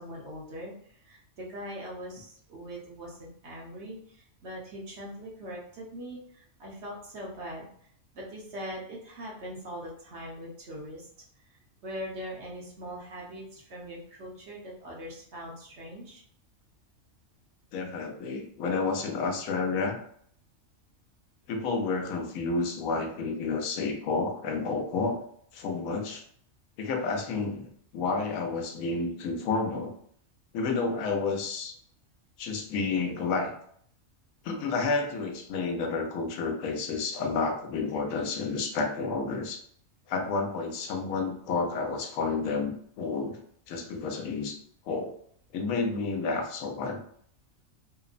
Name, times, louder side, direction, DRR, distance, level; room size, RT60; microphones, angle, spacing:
voice 1, 0.0-7.7 8.1-11.1 11.8-16.2, equal, 60° right, -3 dB, 1.0 m, -41 dB
voice 2, 17.7-20.0 21.5-25.2 25.5-26.2 26.8-27.7 27.9-29.9 30.5-31.7 32.4-33.5 34.4-39.6 40.1-43.4 43.7-44.6 44.9-45.1 45.5-47.0, left 4 dB, 85° left, 4 dB, 1.0 m, -30 dB
2.8 x 2.0 x 2.4 m, 0.62 s
omnidirectional pair, 1.4 m